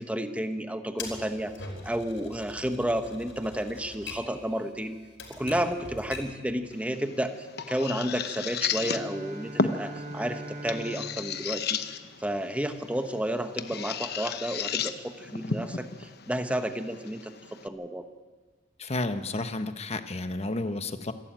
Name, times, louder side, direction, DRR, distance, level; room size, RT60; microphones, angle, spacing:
voice 1, 0.0-1.5 1.8-5.0 5.4-7.4 7.7-11.8 12.2-18.1, right 1 dB, 5° right, 7 dB, 1.1 m, -31 dB
Typewriter, 1.0-6.4, left 4 dB, 75° left, 5.0 m, -43 dB
sound 1, 6.7-17.7, left 5 dB, 55° left, 0.9 m, -34 dB
Bowed string instrument, 8.6-12.7, right 1 dB, 45° right, 1.3 m, -42 dB
voice 2, 18.8-21.1, left 2 dB, 35° left, 9 dB, 1.1 m, -31 dB
26.5 x 12.0 x 9.0 m, 1.4 s
head